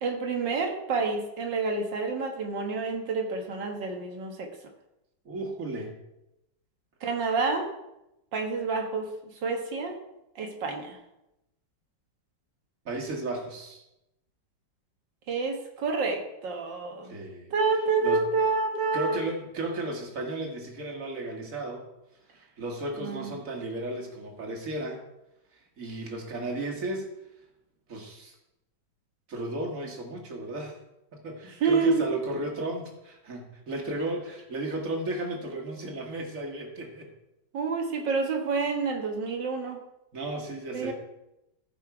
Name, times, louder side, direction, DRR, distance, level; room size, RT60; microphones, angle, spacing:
voice 1, 0.0-4.5 7.0-7.7 8.3-9.1 9.4-10.0 10.4-11.0 15.3-17.1 17.5-19.2 23.0-23.3 31.6-32.0 37.5-39.8 40.7-40.9, right 4 dB, 80° right, 3 dB, 2.1 m, -28 dB
voice 2, 5.3-6.0 12.9-13.8 17.0-17.5 18.0-18.3 18.9-21.8 22.3-25.0 25.5-27.1 27.9-28.4 29.3-30.8 31.1-37.1 40.1-40.9, right 2 dB, 50° right, 0 dB, 2.2 m, -34 dB
14.5 x 5.9 x 4.9 m, 0.90 s
omnidirectional pair, 1.9 m